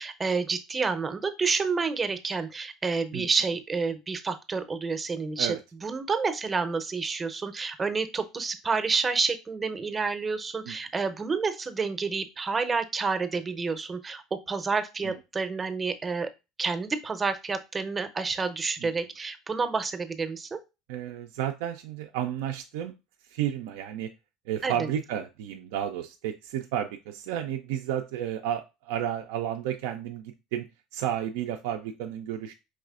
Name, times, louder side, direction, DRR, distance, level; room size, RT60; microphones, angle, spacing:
voice 1, 0.0-5.6 5.8-16.3 16.6-20.6 24.6-24.9, right 4 dB, 25° right, 10 dB, 0.6 m, -29 dB
voice 2, 20.9-22.9 23.3-24.1 24.5-30.7 30.9-32.5, right 10 dB, 75° right, 4 dB, 0.3 m, -32 dB
4.8 x 3.2 x 2.4 m, 0.26 s
hypercardioid pair, 75°, 0 cm